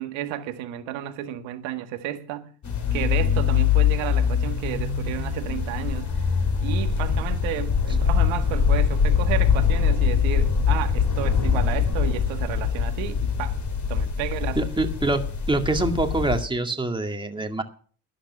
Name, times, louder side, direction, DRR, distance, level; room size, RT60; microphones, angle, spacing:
voice 1, 0.0-2.5 2.9-6.1 6.6-13.6 13.9-14.6, right 13 dB, 70° right, 1.7 m, -32 dB
sound 1, 2.6-16.4, left 7 dB, 35° left, 3.3 m, -23 dB
voice 2, 14.6-17.6, right 2 dB, 10° right, 2.0 m, -25 dB
12.0 x 10.0 x 6.1 m
supercardioid pair, 80°, 47 cm